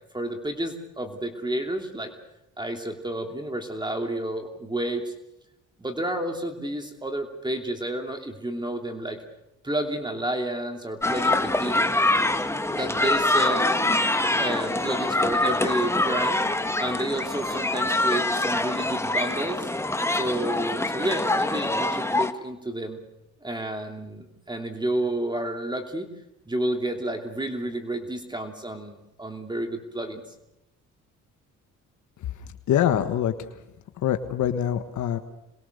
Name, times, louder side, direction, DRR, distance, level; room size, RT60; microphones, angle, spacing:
voice 1, 0.1-2.1 2.6-5.1 5.8-9.2 9.6-11.8 12.7-13.7 14.4-16.4 16.8-19.7 20.1-23.0 23.4-26.1 26.5-30.2, right 1 dB, 15° right, 4 dB, 2.8 m, -30 dB
sound 1, 11.0-22.3, left 2 dB, 10° left, 1.4 m, -24 dB
voice 2, 32.7-33.3 34.0-35.2, left 10 dB, 75° left, 8 dB, 1.4 m, -24 dB
27.5 x 21.0 x 6.7 m, 0.88 s
cardioid pair, 90°, 30 cm